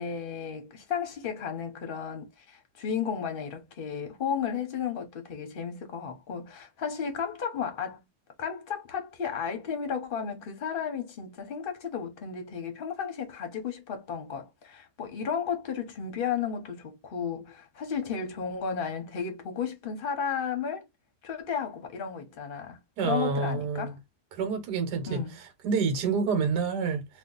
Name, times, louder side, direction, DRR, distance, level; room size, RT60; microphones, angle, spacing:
voice 1, 0.0-8.0 8.4-20.9 21.2-24.0 25.1-25.4, left 7 dB, 45° left, 0.8 m, -33 dB
voice 2, 23.0-23.9 24.3-25.2 25.6-27.1, right 5 dB, 75° right, 1.4 m, -28 dB
2.8 x 2.5 x 3.7 m
omnidirectional pair, 1.8 m